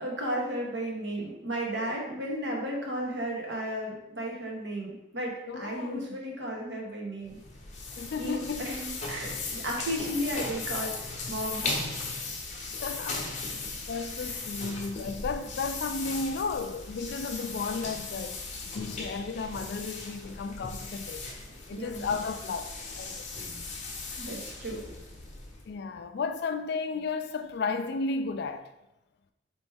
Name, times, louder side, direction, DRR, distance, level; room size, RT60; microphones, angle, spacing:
voice 1, 0.0-7.4 8.2-11.9 13.5-13.6 21.7-22.1 24.2-24.8, right 1 dB, 75° right, 1.1 m, -34 dB
voice 2, 5.5-6.2 8.0-8.7 12.8-21.3 21.7-23.3 25.7-28.7, left 4 dB, 60° left, 0.3 m, -34 dB
sound 1, 7.2-25.7, left 3 dB, 40° left, 0.7 m, -37 dB
4.4 x 3.0 x 3.3 m
head